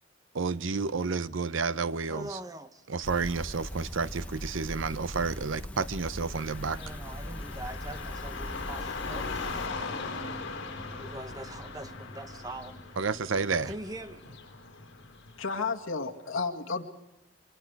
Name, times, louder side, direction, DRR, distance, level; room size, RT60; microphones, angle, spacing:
voice 1, 0.3-2.4 2.9-6.8 13.0-13.7, right 4 dB, 75° right, 0.7 m, -30 dB
voice 2, 2.1-2.9 6.6-9.7 11.0-12.8 13.6-14.3, right 1 dB, 20° right, 1.0 m, -43 dB
sound 1, 3.0-9.7, equal, 5° left, 0.9 m, -40 dB
Car passing by / Traffic noise roadway noise, 6.3-15.4, left 4 dB, 65° left, 3.8 m, -40 dB
sound 2, 9.5-15.9, equal, 40° right, 1.5 m, -49 dB
voice 3, 15.4-16.8, left 4 dB, 90° left, 1.7 m, -32 dB
25.0 x 23.0 x 4.7 m
head